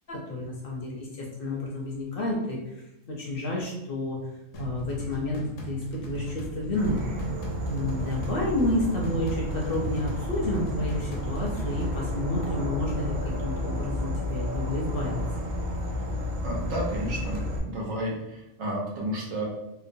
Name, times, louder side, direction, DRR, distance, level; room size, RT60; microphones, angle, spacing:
voice 1, 0.1-2.6 3.1-4.2 4.6-7.0 7.7-15.5, left 2 dB, 60° left, -2 dB, 0.6 m, -30 dB
sound 1, 4.5-11.9, right 3 dB, 85° left, 1.0 m, -37 dB
Insect / Frog, 6.8-17.6, left 1 dB, 70° right, 0.4 m, -32 dB
voice 2, 16.4-19.4, right 1 dB, 90° right, -2 dB, 1.2 m, -32 dB
2.9 x 2.1 x 2.6 m, 0.91 s
omnidirectional pair, 1.3 m